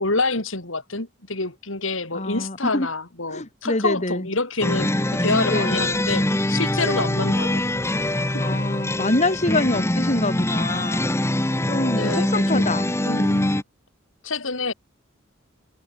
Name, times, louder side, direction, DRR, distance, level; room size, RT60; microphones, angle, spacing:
voice 1, 0.0-7.7 8.3-8.6 11.9-12.7 13.1-13.6 14.2-14.7, left 3 dB, 75° left, 5.2 m, -27 dB
voice 2, 2.1-2.9 3.3-4.3 5.5-5.8 6.8-7.1 8.4-11.1 11.7-12.9, left 2 dB, 35° left, 2.5 m, -25 dB
sound 1, 4.6-13.6, left 1 dB, 15° left, 1.3 m, -23 dB
head